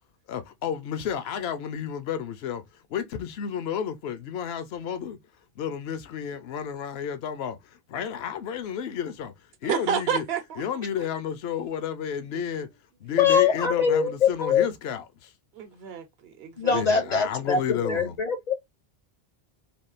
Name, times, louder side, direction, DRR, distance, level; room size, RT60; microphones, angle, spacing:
voice 1, 0.3-5.2 5.6-10.2 10.6-12.7 13.0-15.3 16.7-18.2, left 8 dB, 75° left, 0.8 m, -32 dB
voice 2, 9.7-10.6 15.5-16.8, right 7 dB, 75° right, 0.9 m, -29 dB
voice 3, 13.2-14.7 16.6-18.5, left 6 dB, 50° left, 0.6 m, -23 dB
3.5 x 2.3 x 2.4 m
omnidirectional pair, 1.1 m